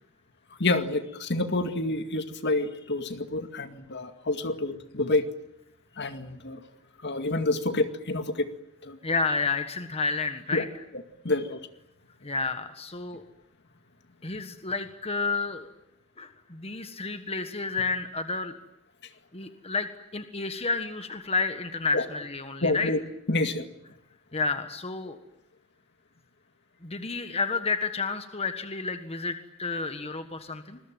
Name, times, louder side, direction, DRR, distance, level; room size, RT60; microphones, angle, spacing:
voice 1, 0.6-5.3 6.0-6.6 7.0-8.5 8.8-9.0 10.5-10.6 11.2-11.7 21.9-22.0 22.6-23.0 23.3-23.7, left 2 dB, 50° left, 9 dB, 2.2 m, -28 dB
voice 2, 9.0-10.7 12.2-13.2 14.2-15.7 16.2-18.6 19.3-22.9 24.3-25.2 26.8-30.8, left 4 dB, 30° left, 8 dB, 1.5 m, -30 dB
27.0 x 21.5 x 9.1 m, 0.83 s
head